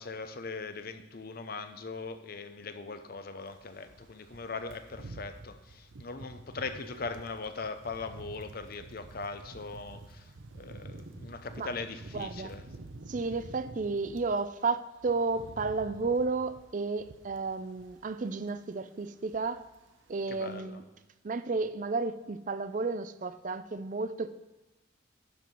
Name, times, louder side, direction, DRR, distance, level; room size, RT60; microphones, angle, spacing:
voice 1, 0.0-12.7 13.2-13.4 20.3-20.8, left 4 dB, 50° left, 0.7 m, -40 dB
sound 1, 3.5-14.4 14.8-18.2 18.4-18.7 19.0-19.8 20.1-20.3, right 2 dB, 80° right, 0.8 m, -49 dB
voice 2, 12.1-12.5 13.1-19.6 20.1-20.8 21.2-24.3, right 4 dB, 40° right, 0.5 m, -32 dB
12.0 x 4.7 x 5.2 m
head